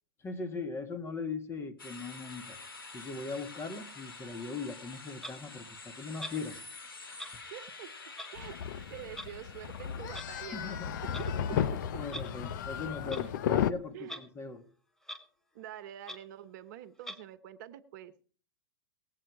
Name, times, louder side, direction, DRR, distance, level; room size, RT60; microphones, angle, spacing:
voice 1, 0.2-2.6 2.9-6.6 10.5-11.2 11.5-11.6 12.0-14.7, left 4 dB, 20° left, 8 dB, 1.8 m, -40 dB
sound 1, 1.8-12.8, left 3 dB, 85° left, 1.8 m, -49 dB
Clock, 5.2-5.3 6.2-6.4 7.1-7.3 8.1-8.3 9.1-9.3 10.1-10.3 11.0-11.2 12.0-12.3 13.1-13.3 14.0-14.2 14.6-14.7 15.0-15.2 15.6-15.7 16.0-16.2 17.0-17.2, equal, 5° left, 1.4 m, -42 dB
voice 2, 7.5-8.6 8.9-12.0 13.0-13.3 13.9-14.5 15.5-18.1, right 11 dB, 55° right, 13 dB, 1.1 m, -46 dB
sound 2, 8.4-13.7, left 9 dB, 60° left, 0.8 m, -34 dB
18.5 x 8.3 x 4.8 m, 0.43 s
hypercardioid pair, 115°, 12 cm